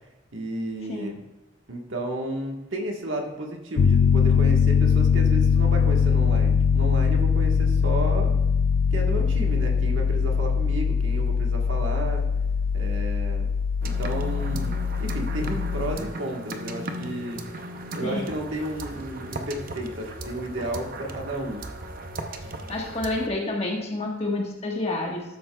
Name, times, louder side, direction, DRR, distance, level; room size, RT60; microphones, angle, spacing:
voice 1, 0.3-1.2 1.7-8.4 8.9-12.3 12.7-13.5 13.8-17.4 17.9-21.7, right 1 dB, 70° right, 1 dB, 1.3 m, -32 dB
Piano, 3.8-16.0, left 6 dB, 75° left, 0.4 m, -22 dB
sound 1, 13.8-23.3, right 1 dB, 45° right, 0.6 m, -37 dB
voice 2, 22.4-25.2, left 2 dB, 30° left, -1 dB, 1.4 m, -29 dB
12.5 x 7.7 x 2.3 m, 0.95 s
head